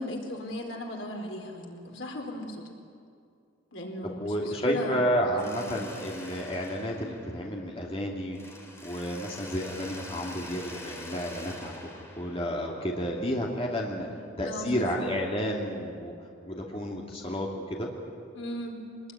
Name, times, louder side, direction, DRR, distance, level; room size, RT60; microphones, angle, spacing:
voice 1, 0.0-2.6 3.7-5.0 5.3-5.8 14.0-14.2 14.4-15.2 18.3-18.8, left 1 dB, 80° left, 2 dB, 4.2 m, -37 dB
voice 2, 4.0-8.4 8.8-14.1 14.4-16.1 16.4-17.9, equal, 30° left, -1 dB, 2.5 m, -31 dB
Mechanisms, 5.4-8.0 8.3-13.2, left 1 dB, 15° left, 3.4 m, -46 dB
24.5 x 20.0 x 10.0 m, 2.4 s
head